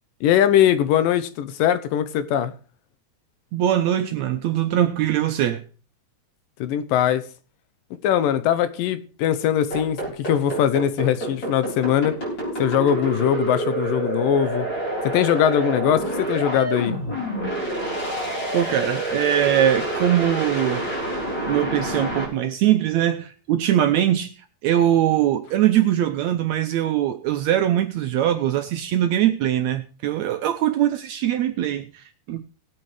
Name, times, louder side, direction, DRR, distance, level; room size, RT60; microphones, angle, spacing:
voice 1, 0.2-2.5 6.6-7.3 8.0-12.2 12.6-14.7 15.0-17.0, left 10 dB, 85° left, 2.5 m, -21 dB
voice 2, 3.5-5.6 18.5-20.9 21.3-24.3 24.6-32.5, right 11 dB, 75° right, 1.7 m, -22 dB
sound 1, 9.7-22.2, right 1 dB, 35° left, 4.5 m, -27 dB
19.5 x 8.4 x 3.3 m
omnidirectional pair, 3.9 m